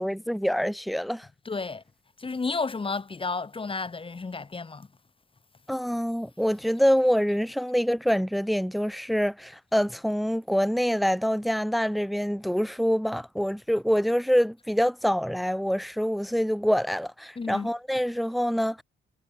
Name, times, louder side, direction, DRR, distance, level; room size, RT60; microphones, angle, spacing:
voice 1, 0.0-1.3 5.7-18.8, equal, ahead, 2.4 m, -25 dB
voice 2, 1.4-1.8 2.2-4.9 17.4-17.7, left 4 dB, 25° left, 2.6 m, -32 dB
cardioid pair, 90°, 20 cm